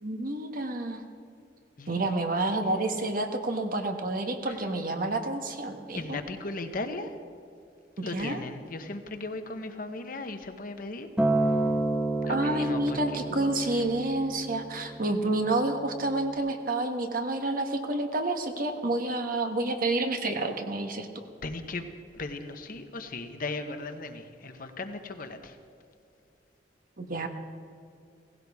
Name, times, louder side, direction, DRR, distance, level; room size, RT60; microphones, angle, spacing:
voice 1, 0.0-1.0 1.9-6.2 8.0-8.4 12.3-21.1 27.0-27.3, right 2 dB, 50° right, 5 dB, 1.3 m, -29 dB
voice 2, 5.9-7.1 8.0-11.1 12.2-13.5 21.4-21.9 22.1-25.6, left 2 dB, 50° left, 7 dB, 1.0 m, -37 dB
Acoustic guitar, 11.2-15.5 16.3-16.4, right 2 dB, 5° right, 1.2 m, -29 dB
17.5 x 16.0 x 3.6 m, 2.4 s
head